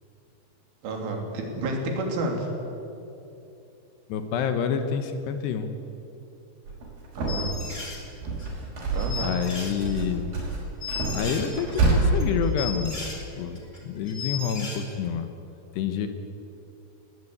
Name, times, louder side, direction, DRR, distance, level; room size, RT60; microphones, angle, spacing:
voice 1, 0.8-2.5 7.2-7.5 8.9-9.4, right 2 dB, 75° right, 1 dB, 5.3 m, -30 dB
voice 2, 4.1-5.7 9.2-10.4 11.1-15.3 15.7-16.1, left 7 dB, 70° left, 8 dB, 2.9 m, -28 dB
sound 1, 6.7-7.7 8.0-9.5 9.8-12.0, right 3 dB, 50° right, 7.1 m, -28 dB
sound 2, 7.3-8.0 8.4-8.5 8.9-10.1 10.4-10.5 10.8-13.2 13.6-13.8 14.1-14.8, left 4 dB, 20° left, 2.6 m, -35 dB
20.5 x 18.0 x 8.7 m, 2.8 s
omnidirectional pair, 5.7 m